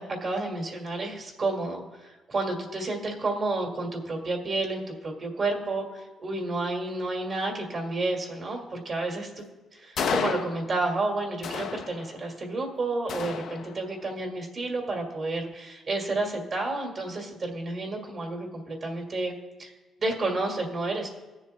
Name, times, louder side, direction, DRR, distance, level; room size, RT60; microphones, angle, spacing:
voice 1, 0.0-9.5 9.7-19.3 19.6-19.7 20.0-21.1, right 2 dB, 45° right, 2 dB, 2.1 m, -30 dB
sound 1, 10.0-11.0 11.4-12.4 13.1-14.1, left 6 dB, 70° left, 0.7 m, -32 dB
19.5 x 7.2 x 2.3 m, 1.1 s
cardioid pair, 90°, 0 cm